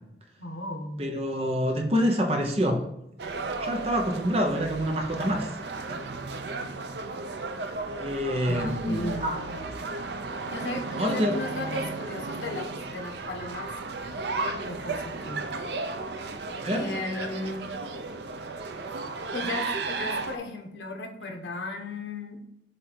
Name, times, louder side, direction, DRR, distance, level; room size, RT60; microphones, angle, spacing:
voice 1, 0.4-1.1 8.4-9.5 10.4-13.7 14.4-15.4 16.7-17.6 19.3-22.4, left 2 dB, 85° left, 3 dB, 1.1 m, -35 dB
voice 2, 1.0-2.9 3.6-5.5 5.9-6.0 8.0-9.4 11.0-11.4 16.6-16.9, equal, 35° right, 2 dB, 0.9 m, -26 dB
sound 1, 3.2-20.4, right 3 dB, 70° right, 0.6 m, -34 dB
7.7 x 2.7 x 4.5 m, 0.80 s
head